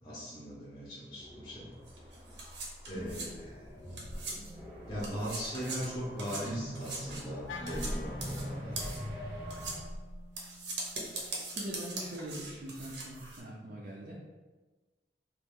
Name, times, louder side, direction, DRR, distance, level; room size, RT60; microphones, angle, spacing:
voice 1, 0.0-1.8 2.9-3.7 4.9-8.8, equal, 20° left, -7 dB, 0.6 m, -39 dB
sound 1, 1.2-9.8, equal, 15° right, 0.7 m, -44 dB
sound 2, 1.9-4.7 5.0-13.4, right 2 dB, 80° right, 0.8 m, -41 dB
Wind instrument woodwind instrument, 7.5-11.7, left 3 dB, 90° left, 0.3 m, -49 dB
voice 2, 11.5-14.2, right 1 dB, 50° right, -4 dB, 0.4 m, -42 dB
3.0 x 2.4 x 3.5 m, 1.3 s
head